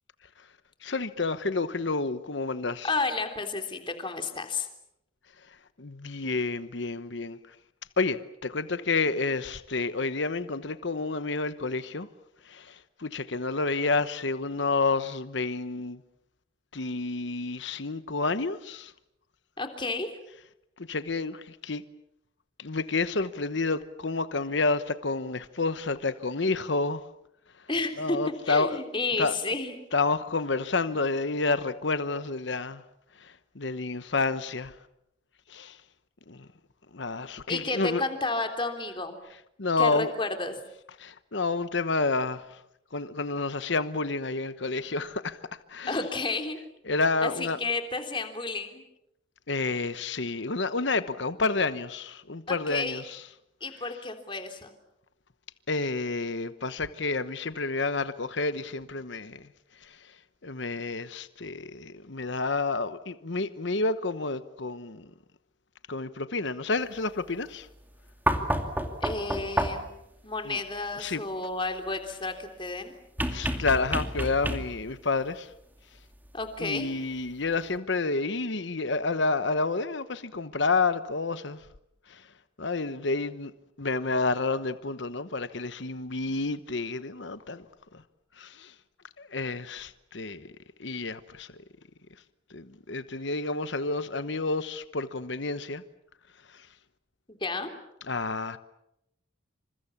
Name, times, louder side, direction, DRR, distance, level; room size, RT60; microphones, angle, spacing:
voice 1, 0.8-2.9 5.4-7.6 8.0-12.1 12.4-16.0 16.7-18.9 20.8-21.8 22.6-27.1 27.5-27.7 28.0-28.8 29.2-29.4 29.9-32.8 33.1-34.8 35.5-35.8 36.3-36.5 36.9-38.0 39.6-40.1 41.0-42.6 42.9-46.0 46.9-47.6 49.5-53.2 55.7-60.2 60.4-65.1 65.9-67.7 70.4-70.6 71.0-71.2 73.3-75.5 76.6-81.7 82.1-82.3 82.6-83.5 83.8-87.6 87.9-88.0 88.4-88.7 89.2-90.5 90.8-91.6 92.5-95.8 96.5-96.7 98.1-98.6, left 3 dB, 65° left, 1.1 m, -30 dB
voice 2, 2.8-4.7 19.6-20.2 27.7-29.7 37.5-39.2 39.8-40.5 45.9-46.6 47.2-48.8 52.5-53.0 53.6-54.7 69.0-69.9 70.2-72.9 76.3-76.9 97.4-97.7, left 3 dB, 25° left, 3.4 m, -31 dB
sound 1, 68.3-70.0 73.2-74.9 76.5-76.6, right 1 dB, 10° right, 2.4 m, -29 dB
28.0 x 26.5 x 7.3 m
head